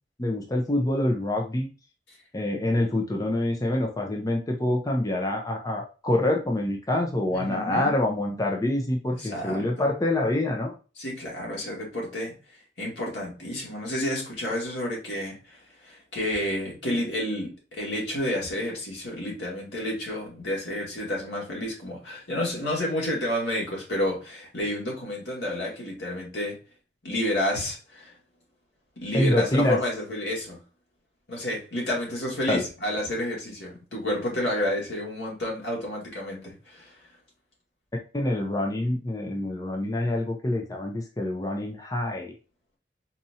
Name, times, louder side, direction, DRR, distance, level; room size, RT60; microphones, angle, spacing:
voice 1, 0.2-1.7 2.3-10.7 29.1-29.8 32.5-32.6 38.1-42.3, left 1 dB, 20° left, 1 dB, 0.5 m, -26 dB
voice 2, 7.3-7.9 9.1-9.9 11.0-12.3 12.8-26.6 27.0-28.1 29.0-30.6 31.3-36.9, left 1 dB, 85° left, -2 dB, 1.7 m, -30 dB
4.1 x 2.5 x 2.7 m, 0.34 s
head